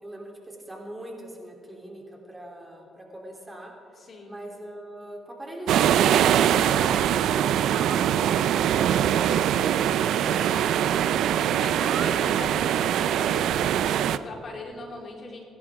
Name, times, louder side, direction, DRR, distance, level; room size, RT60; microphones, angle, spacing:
voice 1, 0.0-3.7 4.3-9.5 9.8-10.7, right 1 dB, 15° right, -1 dB, 3.3 m, -41 dB
voice 2, 4.0-4.4 10.2-11.1 11.4-15.4, left 2 dB, 50° left, -1 dB, 3.3 m, -40 dB
sound 1, 5.7-14.2, right 10 dB, 80° right, 0.5 m, -22 dB
27.0 x 11.5 x 3.6 m, 2.8 s
cardioid pair, 90°, 0 cm